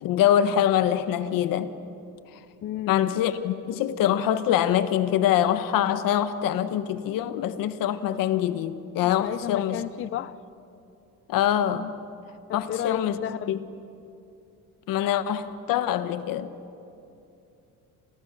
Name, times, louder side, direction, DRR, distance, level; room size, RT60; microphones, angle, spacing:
voice 1, 0.0-1.7 2.9-9.8 11.3-11.9 12.5-13.2 13.5-13.6 14.9-16.5, left 10 dB, 85° left, 11 dB, 1.4 m, -24 dB
voice 2, 2.6-3.1 9.0-10.4 12.5-13.5, left 11 dB, 40° left, 16 dB, 0.6 m, -33 dB
29.5 x 28.5 x 6.9 m, 2.8 s
cardioid pair, 155°, 33 cm